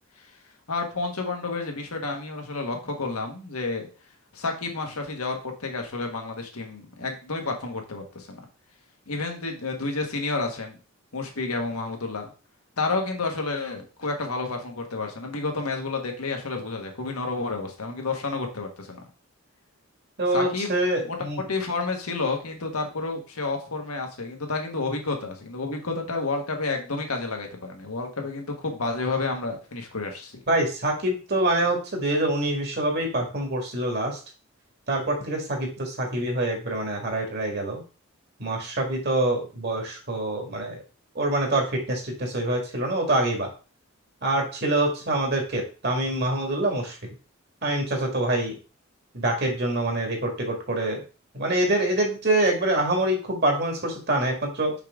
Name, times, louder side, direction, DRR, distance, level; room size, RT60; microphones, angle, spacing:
voice 1, 0.7-3.9 4.3-8.4 9.1-10.7 11.1-12.3 12.8-19.0 20.3-20.7 21.0-30.3, left 3 dB, 85° left, 3 dB, 1.4 m, -30 dB
voice 2, 20.2-21.4 30.5-34.2 34.9-37.8 38.4-40.8 41.1-43.5 44.2-47.0 47.6-48.5 49.1-51.0 51.3-54.7, right 1 dB, 45° right, 2 dB, 1.8 m, -25 dB
5.7 x 5.0 x 3.6 m, 0.34 s
head